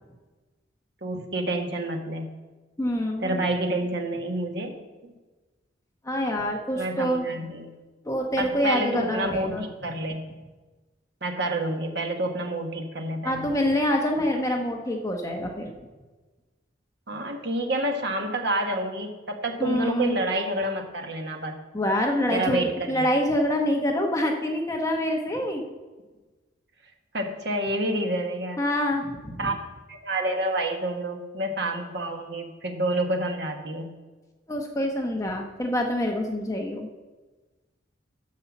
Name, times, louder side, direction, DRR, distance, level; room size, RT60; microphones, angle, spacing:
voice 1, 1.0-2.3 3.2-5.1 6.7-7.7 8.4-10.2 11.2-13.5 17.1-21.6 22.3-23.1 27.1-28.6 29.4-29.6 29.9-33.9, right 1 dB, 60° right, 3 dB, 1.3 m, -28 dB
voice 2, 2.8-3.3 6.0-7.3 8.0-9.7 13.2-15.7 19.6-20.2 21.7-25.6 28.6-29.5 34.5-36.9, equal, 15° left, 1 dB, 1.0 m, -26 dB
10.5 x 5.6 x 7.2 m, 1.2 s
head